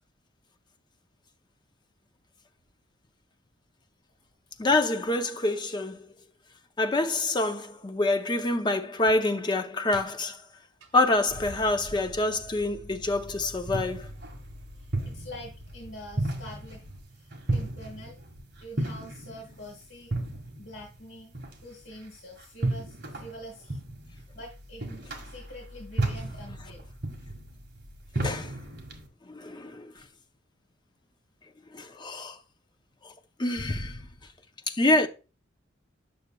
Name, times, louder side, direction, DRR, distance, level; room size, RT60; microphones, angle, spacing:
voice 1, 4.6-6.1 6.8-10.4 10.9-14.1 28.2-28.5 29.3-29.9 31.7-32.4 33.0-33.1 33.4-34.0 34.7-35.1, left 2 dB, 20° left, 0.5 m, -26 dB
Car / Engine starting, 10.8-17.0, left 1 dB, 70° right, 1.8 m, -46 dB
sound 1, 13.2-29.1, right 2 dB, 55° right, 1.6 m, -35 dB
voice 2, 14.7-16.8 17.1-18.2 18.6-20.1 20.6-21.3 21.6-23.8 24.1-26.8, equal, 60° left, 1.6 m, -45 dB
8.1 x 6.4 x 2.2 m
head